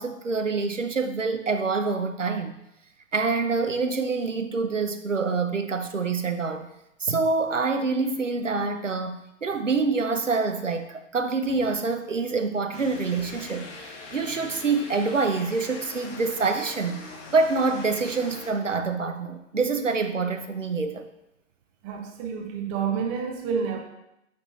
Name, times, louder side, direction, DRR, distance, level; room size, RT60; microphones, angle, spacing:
voice 1, 0.0-2.6 3.1-6.7 7.0-17.0 17.3-21.1, right 4 dB, 85° right, 7 dB, 0.8 m, -26 dB
sound 1, 12.7-18.5, left 3 dB, 25° left, 1.2 m, -42 dB
voice 2, 21.8-23.8, right 6 dB, 15° right, 3 dB, 0.5 m, -29 dB
8.4 x 5.3 x 3.1 m, 0.86 s
figure-of-eight pair, 120°, 37 cm